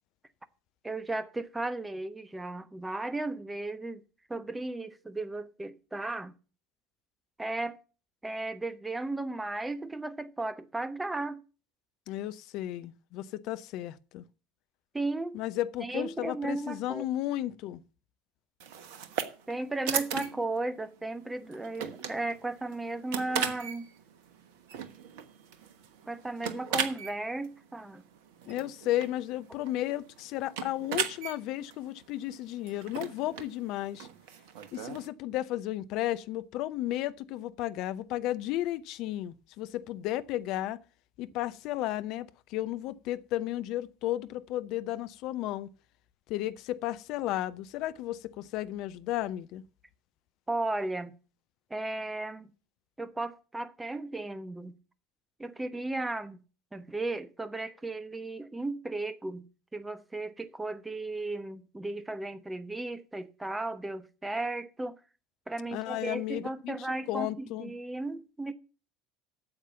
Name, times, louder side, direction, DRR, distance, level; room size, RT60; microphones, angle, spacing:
voice 1, 0.8-4.0 4.3-6.3 7.4-7.8 8.2-11.4 14.9-15.4 15.8-17.0 19.5-23.9 26.1-28.0 50.5-51.1 51.7-52.5 53.0-54.7 55.4-56.4 56.7-59.4 59.7-65.0 65.5-68.5, right 2 dB, 10° right, 1.0 m, -35 dB
voice 2, 12.1-14.2 15.3-17.8 28.5-34.1 34.7-40.8 41.2-45.7 46.3-49.6 65.7-67.7, left 14 dB, 50° left, 0.6 m, -34 dB
sound 1, 18.6-35.1, right 8 dB, 60° right, 1.2 m, -38 dB
8.9 x 7.3 x 6.9 m
figure-of-eight pair, 70°, 0 cm